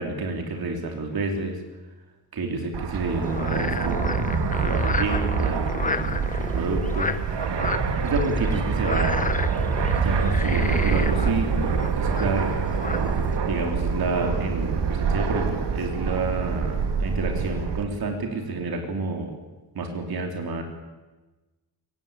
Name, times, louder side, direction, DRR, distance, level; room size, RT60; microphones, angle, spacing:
voice 1, 0.0-1.6 2.3-4.0 4.6-6.3 6.5-7.1 8.0-9.2 10.0-11.5 12.0-12.5 13.5-19.3 19.8-20.6, right 3 dB, 55° right, 3 dB, 3.5 m, -29 dB
Fixed-wing aircraft airplane, 2.7-17.8, right 5 dB, 70° right, 2.4 m, -25 dB
Frog, 3.1-13.4, left 3 dB, 20° left, 1.1 m, -32 dB
23.5 x 19.0 x 8.8 m, 1.2 s
wide cardioid pair, 175°, 43 cm